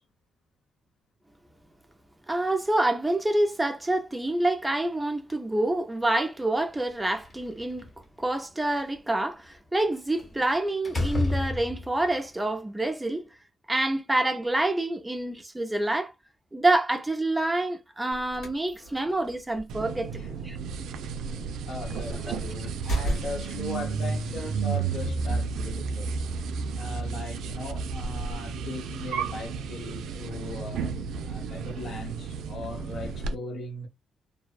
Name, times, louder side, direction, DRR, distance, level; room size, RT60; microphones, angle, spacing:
voice 1, 2.3-7.9 8.2-13.2 13.7-16.1 16.5-20.6 22.3-22.4, right 2 dB, 10° right, 0.4 m, -27 dB
Slam, 7.0-8.0 10.2-10.4 10.8-12.1, left 2 dB, 30° left, 0.9 m, -30 dB
sound 1, 18.1-23.7, right 1 dB, 80° left, 1.4 m, -36 dB
sound 2, 19.7-33.3, right 5 dB, 85° right, 0.4 m, -32 dB
voice 2, 21.6-26.1 26.7-30.9 31.2-33.9, left 2 dB, 60° left, 0.9 m, -38 dB
2.6 x 2.1 x 2.3 m
cardioid pair, 100°, 0 cm